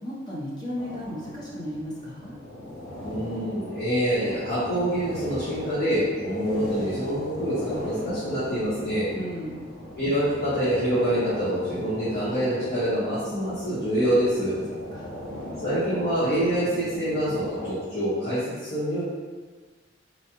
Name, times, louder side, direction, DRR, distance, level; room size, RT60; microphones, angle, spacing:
voice 1, 0.0-2.4 9.1-9.6 14.9-15.1, equal, 20° left, -7 dB, 0.7 m, -34 dB
sound 1, 0.8-17.7, left 1 dB, 90° left, 1.4 m, -38 dB
voice 2, 3.0-9.1 10.0-14.5 15.6-19.0, equal, 55° left, -14 dB, 1.2 m, -26 dB
4.3 x 2.3 x 2.9 m, 1.4 s
head